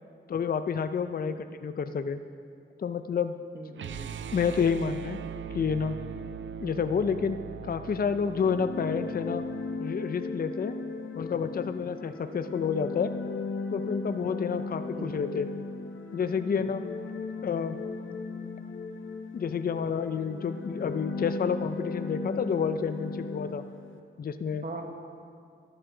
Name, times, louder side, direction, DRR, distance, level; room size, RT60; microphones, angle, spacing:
voice 1, 0.3-2.2 2.8-3.4 4.3-5.2 5.5-6.0 6.6-7.4 7.6-9.5 9.8-10.8 11.1-13.1 13.7-15.5 16.1-16.8 17.4-17.8 19.3-23.6 24.2-24.6, left 6 dB, 45° left, 10 dB, 0.4 m, -29 dB
voice 2, 3.5-4.1 14.9-15.1 24.6-24.8, right 3 dB, 45° right, 3 dB, 1.2 m, -40 dB
sound 1, 3.7-9.8, right 7 dB, 70° right, 0.4 m, -40 dB
sound 2, 8.3-24.0, left 3 dB, 70° left, 0.8 m, -37 dB
12.0 x 11.5 x 3.8 m, 2.3 s
wide cardioid pair, 110°, 21 cm